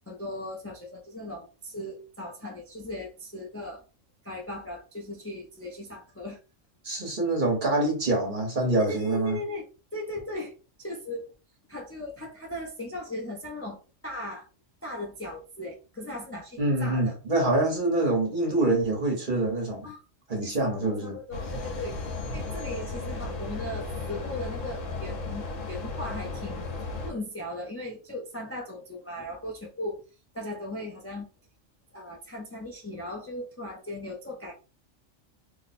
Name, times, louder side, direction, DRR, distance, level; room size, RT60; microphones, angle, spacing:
voice 1, 0.1-3.8 4.2-6.4 8.8-9.7 9.9-10.5 10.8-11.3 11.7-13.8 14.0-14.5 14.8-17.1 19.8-20.0 20.4-22.0 22.3-26.7 27.0-30.0 30.3-31.3 31.9-34.5, left 1 dB, 20° left, 0.4 m, -37 dB
voice 2, 6.8-9.4 16.6-19.9 20.3-21.2, right 2 dB, 40° right, 1.2 m, -25 dB
sound 1, 21.3-27.1, left 3 dB, 75° left, 1.1 m, -35 dB
2.8 x 2.2 x 4.1 m
omnidirectional pair, 1.3 m